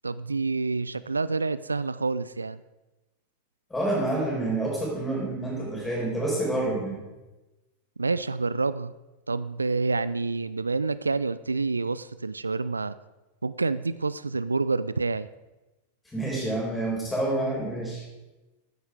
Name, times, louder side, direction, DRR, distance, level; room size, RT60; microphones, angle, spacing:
voice 1, 0.0-2.6 8.0-8.9 9.3-13.0 13.4-15.3, right 3 dB, 80° right, 16 dB, 0.3 m, -28 dB
voice 2, 3.7-7.0 16.1-18.0, right 2 dB, 10° left, -2 dB, 4.9 m, -28 dB
13.0 x 9.4 x 4.9 m, 1.1 s
figure-of-eight pair, 90°, 0 cm